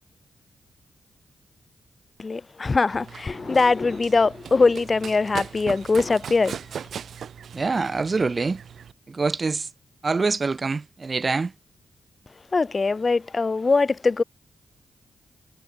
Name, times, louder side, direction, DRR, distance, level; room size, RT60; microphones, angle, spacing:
voice 1, 2.2-6.6 12.5-14.2, left 4 dB, 40° left, 0.4 m, -22 dB
Run, 2.9-8.9, right 8 dB, 75° right, 3.2 m, -38 dB
voice 2, 7.5-8.6 9.1-9.7 10.0-11.5, right 4 dB, 40° right, 1.2 m, -25 dB
cardioid pair, 60°, 0 cm